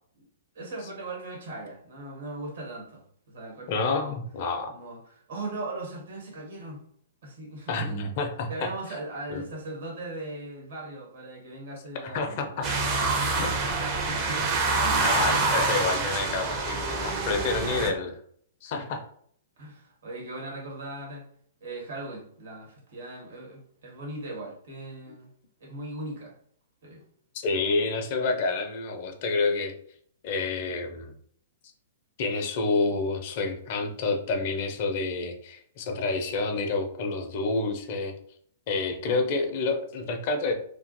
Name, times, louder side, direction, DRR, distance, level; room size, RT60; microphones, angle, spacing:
voice 1, 0.5-4.1 4.7-6.8 7.2-7.9 8.5-12.7 13.4-13.7 14.1-15.5 18.6-18.9 19.6-21.3 21.6-25.3 25.6-26.4 26.8-27.0 39.0-39.2, right 2 dB, 60° right, -1 dB, 1.1 m, -39 dB
voice 2, 3.7-4.7 7.7-8.7 9.3-9.4 11.9-12.7 13.4-13.5 14.9-18.2 18.6-19.0 27.3-29.7 30.2-31.1 32.2-38.1 38.7-40.5, left 3 dB, 45° left, 5 dB, 0.5 m, -28 dB
sound 1, 12.6-17.9, right 3 dB, 30° right, 0.5 m, -26 dB
2.4 x 2.2 x 2.6 m, 0.62 s
figure-of-eight pair, 115°, 0 cm